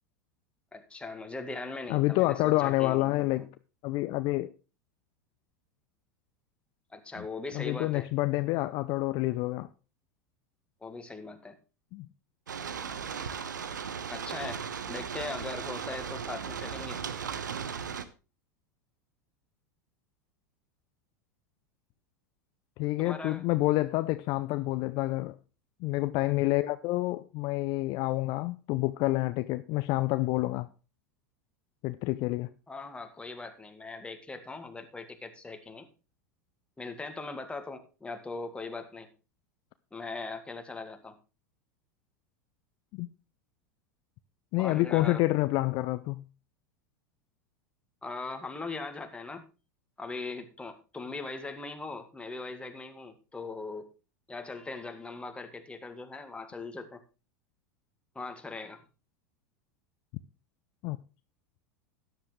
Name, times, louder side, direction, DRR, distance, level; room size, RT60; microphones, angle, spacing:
voice 1, 0.7-3.5 6.9-8.1 10.8-11.6 14.1-14.6 14.9-17.0 23.0-23.4 32.7-35.9 36.8-39.1 39.9-41.1 44.6-45.2 48.0-49.4 50.0-53.9 54.3-57.0 58.2-58.8, left 3 dB, 10° left, 2.0 m, -40 dB
voice 2, 1.9-3.5 3.8-4.5 7.5-9.7 11.9-12.1 22.8-25.4 25.8-30.7 31.8-32.5 42.9-43.1 44.5-46.2 60.8-61.0, left 19 dB, 50° left, 0.6 m, -28 dB
sound 1, 12.5-18.0, right 7 dB, 80° right, 1.0 m, -37 dB
13.0 x 10.5 x 3.3 m
hypercardioid pair, 90°, 10 cm